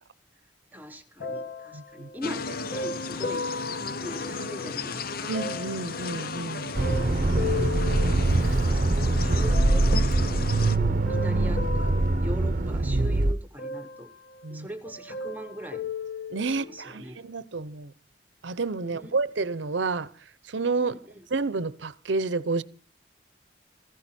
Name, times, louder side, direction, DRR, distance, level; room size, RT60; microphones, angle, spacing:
voice 1, 0.7-5.4 7.0-14.1 14.5-15.8 16.5-17.2 18.8-19.1 20.8-21.0, equal, 10° right, 1.0 m, -41 dB
sound 1, 1.2-4.8 5.3-8.8 9.5-10.2 10.8-13.1 13.6-14.6 14.8-16.9 17.6-17.7, left 4 dB, 85° left, 2.7 m, -37 dB
voice 2, 1.7-2.1 4.3-4.7 5.3-6.7 14.4-14.7 16.3-17.9 18.4-20.1 20.5-21.0 21.3-22.6, right 3 dB, 75° right, 0.8 m, -30 dB
sound 2, 2.2-10.8, left 4 dB, 50° left, 0.6 m, -35 dB
Accelerating revving vroom, 6.7-13.3, right 2 dB, 45° right, 0.7 m, -23 dB
15.5 x 15.5 x 4.3 m
head